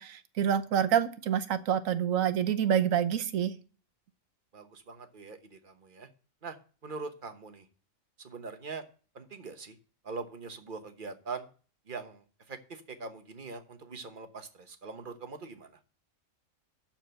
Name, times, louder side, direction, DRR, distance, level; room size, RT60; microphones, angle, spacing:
voice 1, 0.0-3.5, right 9 dB, 70° right, 12 dB, 1.2 m, -27 dB
voice 2, 4.5-6.1 6.4-6.6 6.8-7.7 8.2-8.8 9.1-9.7 10.0-11.5 11.9-15.8, right 4 dB, 40° right, 8 dB, 1.2 m, -42 dB
12.5 x 4.4 x 7.7 m, 0.39 s
omnidirectional pair, 1.5 m